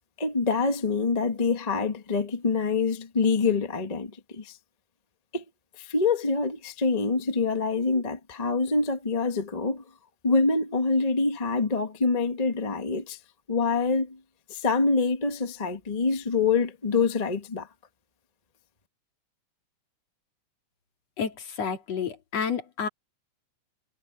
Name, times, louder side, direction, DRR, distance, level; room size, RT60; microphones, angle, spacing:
voice 1, 0.2-4.5 5.3-5.4 5.8-9.8 10.2-13.2 13.5-14.2 14.5-17.7, left 4 dB, 30° left, 0.7 m, -25 dB
voice 2, 21.2-22.9, left 6 dB, 55° left, 3.7 m, -30 dB
omnidirectional pair, 3.7 m